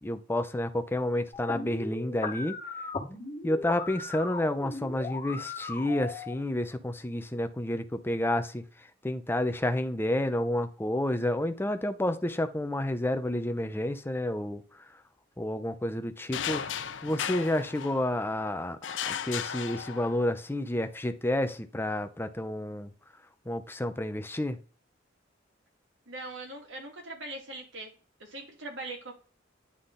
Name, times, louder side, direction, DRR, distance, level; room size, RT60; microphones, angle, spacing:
voice 1, 0.0-2.6 3.4-8.7 9.0-14.6 15.4-16.8 17.0-18.8 19.1-22.9 23.5-24.6, left 1 dB, 10° left, 0.6 m, -30 dB
sound 1, 1.3-6.3, left 3 dB, 30° left, 1.5 m, -38 dB
sound 2, 16.3-18.3 18.8-20.4, left 8 dB, 70° left, 0.6 m, -35 dB
voice 2, 26.1-27.9 28.2-29.1, right 2 dB, 75° right, 2.3 m, -41 dB
9.8 x 3.8 x 3.9 m
head